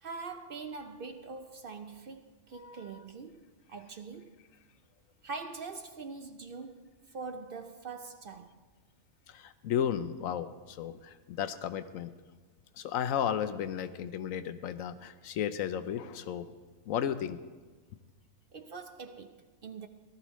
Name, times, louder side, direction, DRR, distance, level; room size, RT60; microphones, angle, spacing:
voice 1, 0.0-4.4 5.2-8.6 18.5-19.9, right 4 dB, 55° right, 0.7 m, -43 dB
voice 2, 2.5-3.0 9.3-12.1 12.8-16.5 16.9-17.4, left 9 dB, 80° left, 1.0 m, -34 dB
17.5 x 13.0 x 3.1 m
omnidirectional pair, 1.4 m